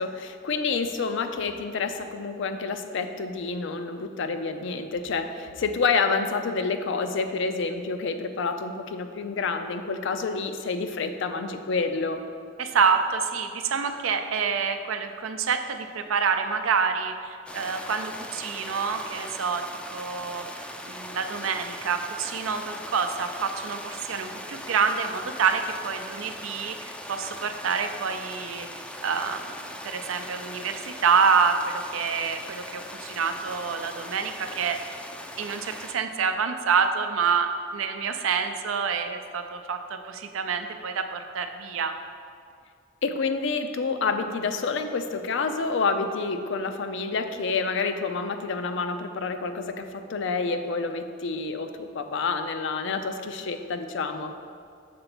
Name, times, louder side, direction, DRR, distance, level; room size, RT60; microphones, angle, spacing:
voice 1, 0.0-12.2 43.0-54.3, left 4 dB, 65° left, 8 dB, 0.5 m, -28 dB
voice 2, 12.6-19.6 19.9-28.7 29.0-29.5 29.8-34.8 35.4-42.0, right 6 dB, 85° right, 7 dB, 0.5 m, -27 dB
sound 1, 17.5-35.9, left 1 dB, 5° left, 0.4 m, -40 dB
6.7 x 3.9 x 6.0 m, 2.3 s
head